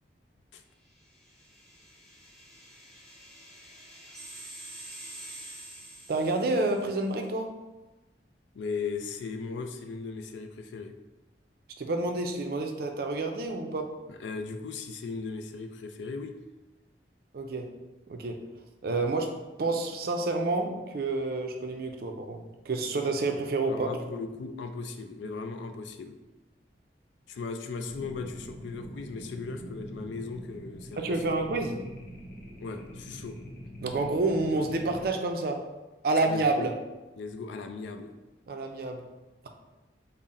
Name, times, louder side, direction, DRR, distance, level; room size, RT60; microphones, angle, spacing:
sound 1, 1.0-7.0, right 1 dB, ahead, 0.7 m, -47 dB
voice 1, 6.1-7.5 11.8-13.9 17.3-17.8 18.1-18.5 18.8-23.9 31.0-31.8 33.8-35.6 36.0-36.7 38.5-39.1, right 2 dB, 55° right, 4 dB, 0.4 m, -29 dB
voice 2, 8.5-10.9 14.1-16.3 23.7-26.1 27.3-31.2 32.6-33.4 36.3-36.7 37.2-38.1, left 4 dB, 80° left, 6 dB, 0.4 m, -37 dB
sound 2, 27.9-35.1, equal, 50° left, 0.7 m, -44 dB
3.7 x 2.0 x 4.0 m, 1.1 s
head